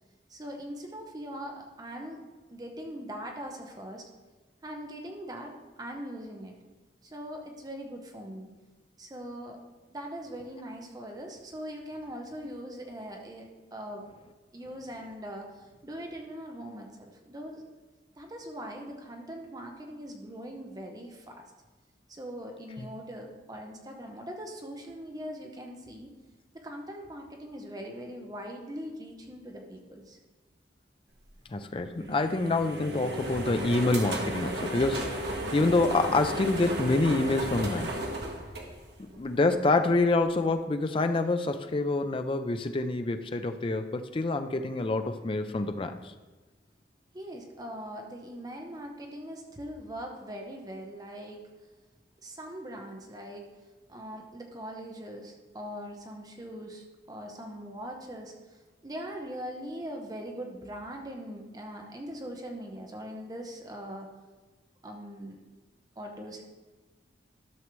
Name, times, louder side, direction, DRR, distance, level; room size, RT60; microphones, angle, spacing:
voice 1, 0.3-2.2 2.5-4.1 4.6-6.6 7.0-8.5 9.0-9.6 9.9-14.0 14.5-17.6 18.2-21.5 22.1-26.1 26.5-30.2 47.1-51.4 52.2-53.5 53.9-64.1 64.8-65.4 66.0-66.4, equal, 20° right, 1 dB, 0.8 m, -41 dB
voice 2, 31.5-37.9 39.0-45.9, left 2 dB, 30° left, 8 dB, 0.4 m, -27 dB
sound 1, 32.0-39.3, right 1 dB, 65° right, 1.2 m, -34 dB
12.5 x 6.3 x 3.1 m, 1.2 s
head